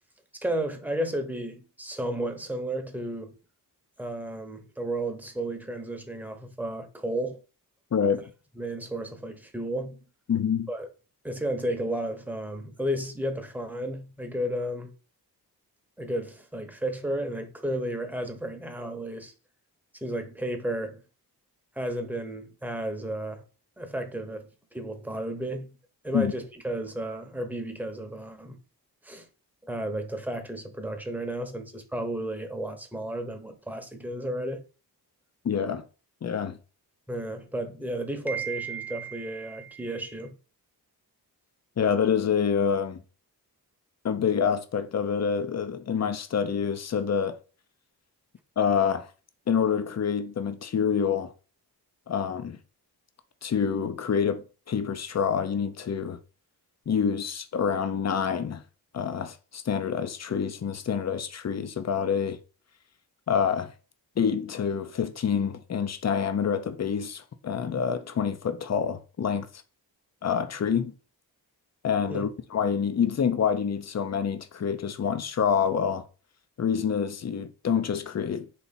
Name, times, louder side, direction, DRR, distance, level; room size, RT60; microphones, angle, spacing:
voice 1, 0.4-3.4 4.0-7.4 8.6-10.0 10.7-10.9 11.2-14.9 16.0-19.3 20.0-21.0 21.8-23.4 23.8-25.7 26.0-28.6 29.0-29.3 29.6-34.6 37.1-40.3 72.1-72.3, right 1 dB, 5° right, 0.9 m, -33 dB
voice 2, 7.9-8.2 10.3-10.7 26.1-26.3 35.4-35.8 36.2-36.6 41.8-43.0 44.0-47.3 48.6-49.1 49.5-51.3 52.1-52.6 53.4-56.2 56.9-58.6 58.9-62.4 63.3-63.7 64.2-69.5 70.2-70.9 71.8-76.0 76.6-78.5, left 7 dB, 40° left, 0.6 m, -27 dB
4.1 x 2.8 x 4.2 m
cardioid pair, 60°, 39 cm